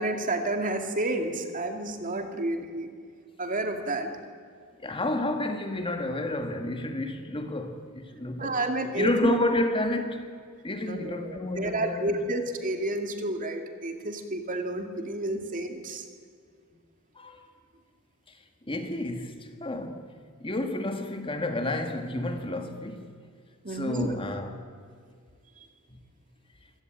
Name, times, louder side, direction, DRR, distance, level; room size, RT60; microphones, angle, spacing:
voice 1, 0.0-2.9 3.4-4.1 8.4-9.4 10.8-16.0 23.6-24.1, right 1 dB, 35° right, 2.5 m, -30 dB
voice 2, 4.8-8.6 9.0-10.3 10.6-12.1 17.1-17.4 18.3-20.1 20.4-23.1 23.7-24.5 25.9-26.0, left 1 dB, 25° left, 1.8 m, -30 dB
25.5 x 17.0 x 9.1 m
head